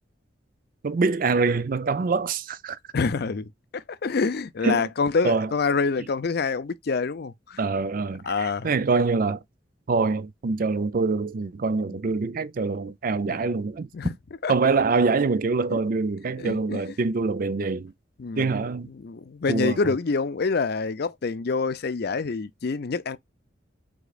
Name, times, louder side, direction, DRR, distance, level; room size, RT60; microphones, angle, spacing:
voice 1, 0.8-2.8 4.6-4.9 5.2-5.5 7.6-9.4 9.9-13.9 14.5-17.9 18.4-18.9 19.5-19.9, right 4 dB, 50° right, 0.5 m, -25 dB
voice 2, 2.9-7.6 8.2-8.7 11.9-12.0 13.3-13.4 13.9-14.1 14.4-14.5 15.7-15.8 16.4-16.9 18.2-18.5 18.9-23.2, left 4 dB, 55° left, 0.5 m, -27 dB
4.9 x 3.7 x 2.3 m
head